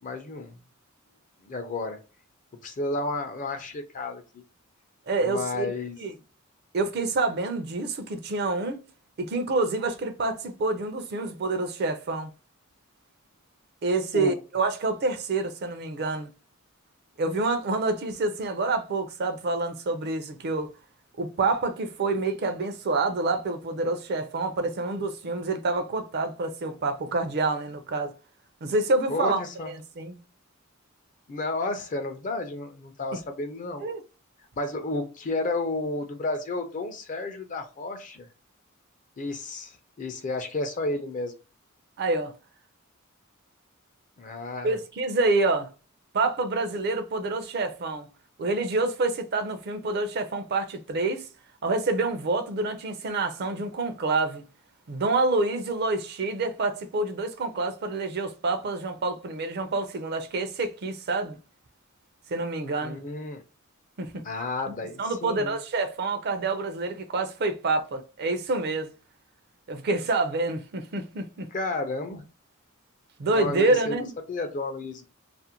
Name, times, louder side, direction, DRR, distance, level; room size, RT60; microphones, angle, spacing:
voice 1, 0.0-0.6 1.4-2.0 2.6-4.4 5.2-6.0 14.1-14.4 29.1-29.7 31.3-33.8 34.6-38.3 39.2-41.3 44.2-44.8 62.8-63.4 64.2-65.6 71.5-72.2 73.3-75.0, left 2 dB, 40° left, 0.5 m, -32 dB
voice 2, 5.1-5.7 6.0-6.1 6.7-8.8 9.2-12.3 13.8-16.3 17.2-20.7 21.2-28.1 28.6-30.2 33.8-34.0 42.0-42.3 44.6-45.7 46.1-48.1 48.4-51.3 51.6-54.4 54.9-61.4 62.3-63.0 64.0-64.2 64.7-68.9 69.7-71.5 73.2-74.1, right 3 dB, 50° right, 0.5 m, -27 dB
2.5 x 2.1 x 2.8 m
head